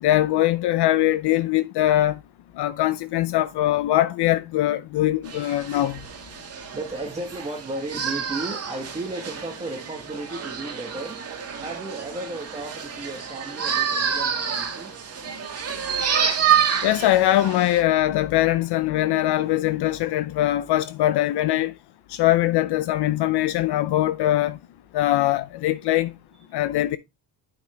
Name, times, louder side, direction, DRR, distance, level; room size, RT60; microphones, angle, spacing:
voice 1, 0.0-2.2 2.6-6.0 16.8-21.7 22.1-24.6 24.9-26.1 26.5-27.0, left 14 dB, 70° left, 0.6 m, -22 dB
sound 1, 5.2-17.8, right 7 dB, 35° right, 1.9 m, -28 dB
voice 2, 6.6-11.2 11.6-15.0 26.5-26.6, right 2 dB, 15° right, 1.3 m, -34 dB
9.0 x 5.9 x 3.3 m
cardioid pair, 135°, 42 cm